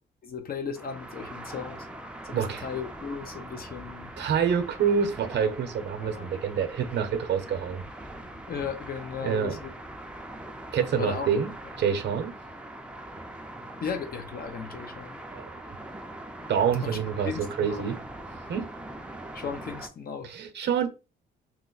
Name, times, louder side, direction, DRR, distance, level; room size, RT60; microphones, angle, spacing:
voice 1, 0.2-1.9 2.2-4.1 6.0-6.3 8.5-9.7 11.0-11.3 13.8-15.2 16.8-17.0 17.2-17.9 19.3-20.3, left 6 dB, 50° left, 0.7 m, -36 dB
sound 1, 0.7-19.9, right 1 dB, 5° right, 0.5 m, -42 dB
voice 2, 2.3-2.7 4.2-7.8 9.2-9.6 10.7-11.5 11.8-12.4 15.3-15.8 16.5-18.0 18.5-18.7 20.2-20.9, right 7 dB, 60° right, 0.7 m, -27 dB
2.9 x 2.1 x 3.9 m
cardioid pair, 90°, 20 cm